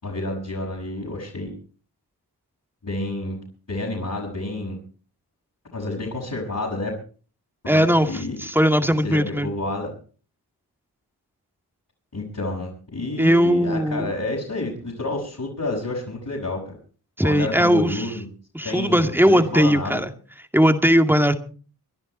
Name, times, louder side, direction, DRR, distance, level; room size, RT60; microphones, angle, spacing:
voice 1, 0.0-1.5 2.8-3.4 3.7-4.8 5.7-6.9 7.6-8.4 9.0-9.9 12.1-16.8 17.2-18.3 18.6-20.0, left 2 dB, 50° left, -4 dB, 6.1 m, -29 dB
voice 2, 7.7-9.5 13.2-14.1 17.2-18.1 18.5-20.1 20.5-21.3, equal, 5° right, 7 dB, 2.2 m, -19 dB
24.0 x 11.0 x 4.4 m, 0.39 s
cardioid pair, 45°, 40 cm